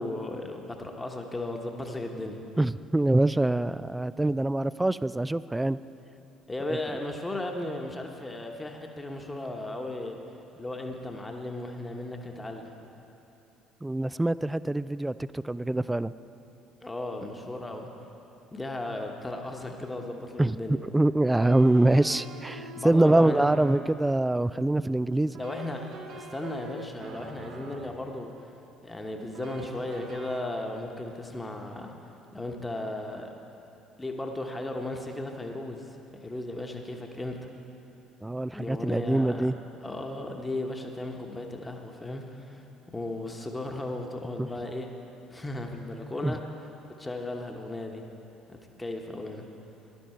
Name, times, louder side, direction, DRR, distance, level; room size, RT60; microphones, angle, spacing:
voice 1, 0.0-2.4 6.5-10.2 10.6-12.8 16.8-17.9 18.5-20.7 22.7-23.5 25.4-25.9 26.1-28.3 28.8-31.9 32.3-33.3 34.0-35.8 36.1-37.5 38.5-39.5 39.8-44.9 45.3-46.4 47.0-48.0 48.5-49.4, left 2 dB, 15° left, 2 dB, 1.2 m, -35 dB
voice 2, 2.6-5.8 13.8-16.1 20.4-25.4 38.2-39.6 44.4-44.5 46.2-46.4, right 1 dB, 10° right, 16 dB, 0.3 m, -24 dB
sound 1, 19.9-20.0 21.3-24.0 25.3-28.0 29.3-30.4, right 3 dB, 60° right, 1.1 m, -44 dB
14.5 x 11.5 x 4.5 m, 2.9 s
figure-of-eight pair, 55°, 0 cm